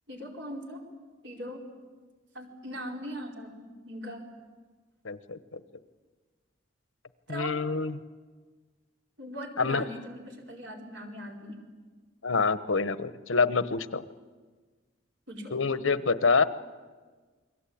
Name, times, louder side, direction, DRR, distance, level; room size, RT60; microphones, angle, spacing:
voice 1, 0.1-0.8 1.2-1.6 2.3-4.2 7.3-7.5 9.2-11.6 15.3-15.6, equal, 65° right, 1 dB, 4.6 m, -40 dB
voice 2, 5.0-5.6 7.3-8.0 9.6-9.8 12.2-14.0 15.5-16.4, left 4 dB, 80° left, 13 dB, 1.0 m, -26 dB
29.0 x 22.0 x 8.6 m, 1.4 s
head